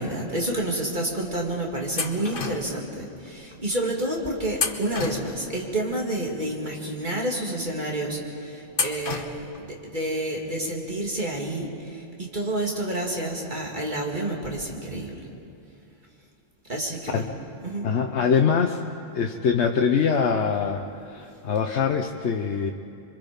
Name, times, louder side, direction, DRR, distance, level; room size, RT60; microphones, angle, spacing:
voice 1, 0.0-15.2 16.7-17.3 17.6-17.9, right 1 dB, 40° right, -1 dB, 2.8 m, -29 dB
sound 1, 2.0-2.9 4.5-5.7 8.7-9.6, left 4 dB, 50° left, 1.3 m, -30 dB
voice 2, 17.8-18.8 19.1-22.7, left 6 dB, 70° left, 4 dB, 1.1 m, -23 dB
27.0 x 24.0 x 5.3 m, 2.6 s
omnidirectional pair, 1.2 m